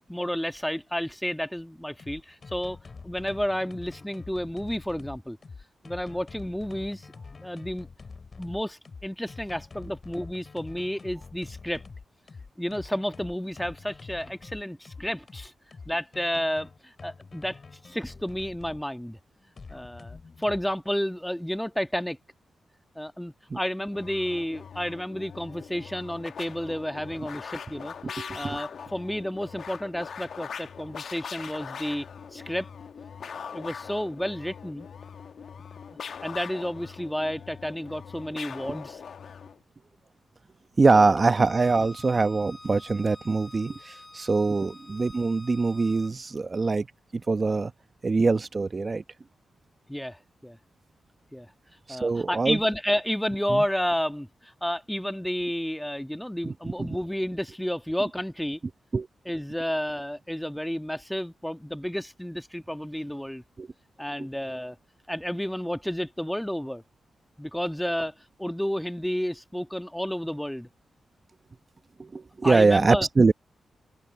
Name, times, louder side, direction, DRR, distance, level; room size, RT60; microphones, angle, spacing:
voice 1, 0.0-2.8 3.0-5.4 5.8-7.1 7.4-7.9 8.4-11.8 12.6-15.5 15.8-19.2 19.7-22.2 22.9-27.9 28.3-32.1 32.3-32.7 33.5-34.9 36.2-39.0 40.9-41.2 44.5-44.6 49.9-50.6 51.3-51.5 51.9-58.6 59.2-63.4 64.0-64.8 65.1-66.8 67.4-70.7 72.4-73.1, equal, 5° left, 1.5 m, -31 dB
sound 1, 1.8-18.8 19.6-20.7, left 4 dB, 50° left, 2.7 m, -46 dB
sound 2, 23.9-39.6, left 6 dB, 70° left, 1.1 m, -41 dB
voice 2, 28.0-28.6 40.8-46.9 47.3-47.7 48.0-49.0 51.9-52.6 53.5-53.6 56.4-56.5 56.8-56.9 58.9-59.1 63.6-63.7 72.0-73.3, right 3 dB, 40° right, 1.0 m, -23 dB
Bowed string instrument, 41.2-46.1, left 2 dB, 25° left, 3.4 m, -48 dB
open air
cardioid pair, 55°, 0 cm